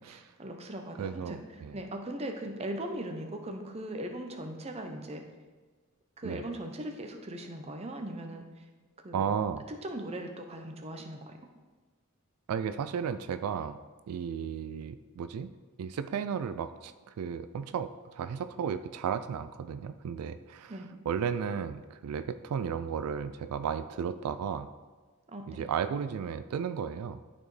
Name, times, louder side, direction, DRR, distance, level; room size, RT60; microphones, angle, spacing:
voice 1, 0.1-1.4 1.7-5.2 6.2-8.6 9.0-9.3 9.7-11.3 20.7-21.0 25.3-25.6, right 1 dB, 30° right, 5 dB, 0.6 m, -39 dB
voice 2, 1.0-1.8 6.2-6.4 9.1-9.7 12.5-13.8 14.1-15.5 15.8-20.8 21.1-24.7 25.5-27.2, right 7 dB, 85° right, 12 dB, 0.3 m, -34 dB
12.0 x 4.3 x 3.2 m, 1.4 s
head